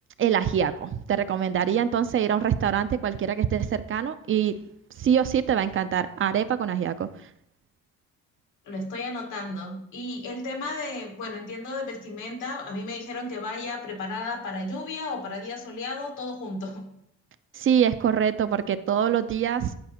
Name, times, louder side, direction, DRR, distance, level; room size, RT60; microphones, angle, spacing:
voice 1, 0.2-4.5 5.0-7.1 17.5-19.7, right 9 dB, 45° right, 12 dB, 0.4 m, -24 dB
voice 2, 8.6-16.9, left 2 dB, 85° left, 1 dB, 1.6 m, -34 dB
9.5 x 4.1 x 2.9 m, 0.74 s
cardioid pair, 90°, 30 cm